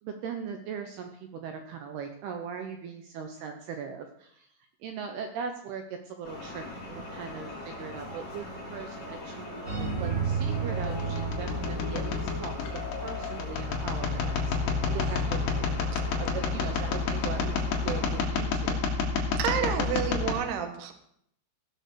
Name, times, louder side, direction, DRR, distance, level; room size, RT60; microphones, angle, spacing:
voice 1, 0.0-4.5 4.8-14.6 14.9-15.5 16.2-18.8 19.4-20.0, right 6 dB, 90° right, 5 dB, 2.3 m, -39 dB
sound 1, 6.2-18.2, left 1 dB, 30° left, 5.5 m, -41 dB
sound 2, 9.6-12.6, right 5 dB, 30° right, 3.3 m, -32 dB
sound 3, 10.5-20.3, left 4 dB, 60° left, 3.3 m, -30 dB
voice 2, 19.4-20.9, right 8 dB, 75° right, 6 dB, 2.0 m, -30 dB
15.5 x 6.7 x 6.7 m, 0.70 s
omnidirectional pair, 5.8 m